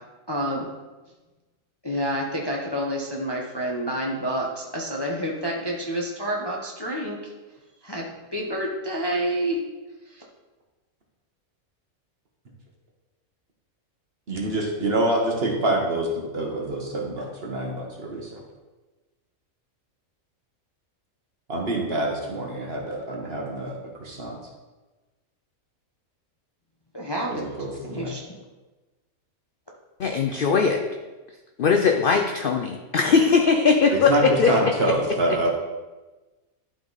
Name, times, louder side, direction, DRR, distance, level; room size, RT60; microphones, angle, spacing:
voice 1, 0.3-0.7 1.8-7.3 7.8-9.6 10.1-10.2 26.9-27.5 27.9-28.2, equal, 25° left, -2 dB, 0.7 m, -28 dB
voice 2, 14.3-18.4 21.5-24.4 27.3-28.1 33.9-35.5, right 2 dB, 45° right, 0 dB, 1.4 m, -26 dB
voice 3, 30.0-30.8 31.6-34.5, left 5 dB, 60° left, 4 dB, 0.5 m, -20 dB
11.5 x 3.8 x 3.9 m, 1.2 s
omnidirectional pair, 1.5 m